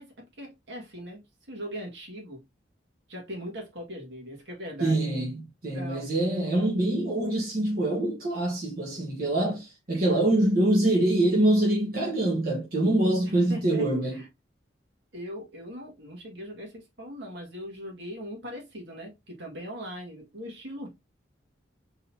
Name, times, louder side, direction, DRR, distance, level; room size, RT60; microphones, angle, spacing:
voice 1, 0.0-2.4 3.1-5.0 5.7-6.1 13.2-14.3 15.1-20.9, equal, 70° right, 1.9 m, -40 dB
voice 2, 4.8-14.2, right 1 dB, 50° right, 1.3 m, -25 dB
4.0 x 3.9 x 2.7 m
head